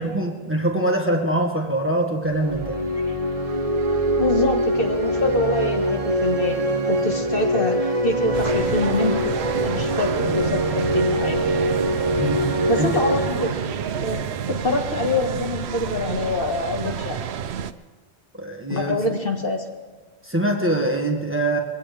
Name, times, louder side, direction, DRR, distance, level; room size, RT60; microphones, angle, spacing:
voice 1, 0.0-2.8 12.2-13.0 18.4-19.0 20.2-21.6, right 1 dB, 10° right, 1 dB, 1.6 m, -23 dB
sound 1, 2.2-14.9, right 1 dB, 35° right, 1.0 m, -24 dB
voice 2, 4.2-9.2 9.6-11.5 12.7-13.5 14.0-14.2 14.5-17.2 18.7-19.6, left 2 dB, 60° left, 2 dB, 1.8 m, -25 dB
sound 2, 8.3-17.7, right 8 dB, 80° right, 0.9 m, -29 dB
22.5 x 16.0 x 3.4 m, 1.4 s
omnidirectional pair, 1.1 m